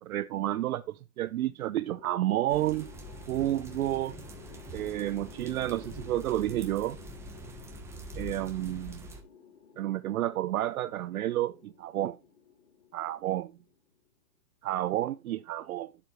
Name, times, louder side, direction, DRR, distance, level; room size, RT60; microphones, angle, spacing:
voice 1, 0.0-2.9 3.3-4.2 4.7-7.0 8.2-9.0 9.8-12.2 12.9-13.5 14.6-15.9, right 14 dB, 60° right, 0.6 m, -30 dB
sound 1, 1.7-14.0, left 7 dB, 65° left, 3.8 m, -54 dB
sound 2, 2.5-9.2, right 1 dB, 5° right, 0.9 m, -45 dB
11.0 x 7.2 x 3.1 m
hypercardioid pair, 150°, 49 cm